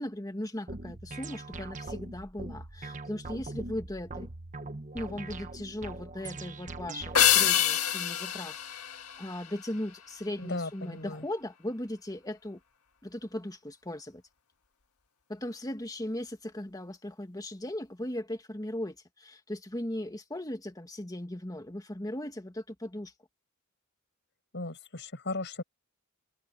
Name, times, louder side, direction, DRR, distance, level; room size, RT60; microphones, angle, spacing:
voice 1, 0.0-4.3 4.9-12.6 13.0-14.2 15.3-23.1, left 1 dB, 15° left, 1.9 m, -38 dB
sound 1, 0.7-7.5, right 2 dB, 35° right, 1.1 m, -42 dB
sound 2, 7.1-9.8, left 10 dB, 85° left, 1.7 m, -26 dB
voice 2, 10.4-11.2 24.5-25.6, left 2 dB, 55° left, 6.1 m, -36 dB
head